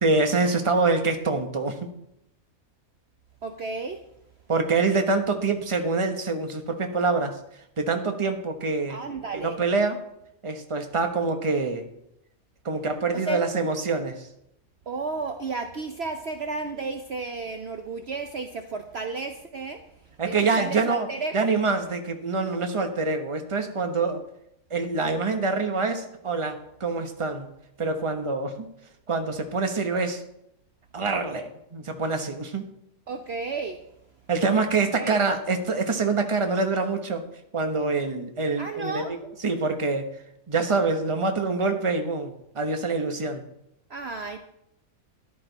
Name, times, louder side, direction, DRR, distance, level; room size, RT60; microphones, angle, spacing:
voice 1, 0.0-1.8 4.5-7.4 7.8-9.0 9.3-10.0 10.4-11.8 12.6-14.3 20.2-21.1 21.3-24.2 24.7-27.5 27.8-28.7 29.1-30.2 30.9-32.7 34.3-37.2 37.5-39.2 39.4-40.1 40.5-43.4, right 3 dB, 25° right, 5 dB, 1.1 m, -25 dB
voice 2, 3.4-4.0 8.9-9.6 13.1-13.4 14.9-19.8 20.3-21.5 33.1-33.8 34.9-35.2 38.6-39.1 43.9-44.4, right 4 dB, 50° right, 6 dB, 1.0 m, -33 dB
14.0 x 11.0 x 4.1 m, 0.79 s
omnidirectional pair, 1.5 m